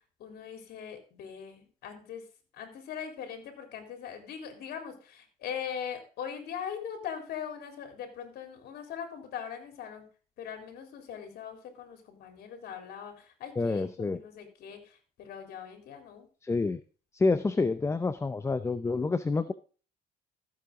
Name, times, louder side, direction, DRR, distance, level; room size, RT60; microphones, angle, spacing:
voice 1, 0.2-2.3 2.5-10.1 10.4-16.3, left 8 dB, 70° left, 5 dB, 3.8 m, -41 dB
voice 2, 13.6-14.2 16.4-16.8 17.1-19.5, left 3 dB, 15° left, 12 dB, 0.6 m, -28 dB
14.5 x 7.9 x 3.7 m, 0.37 s
cardioid pair, 110°, 17 cm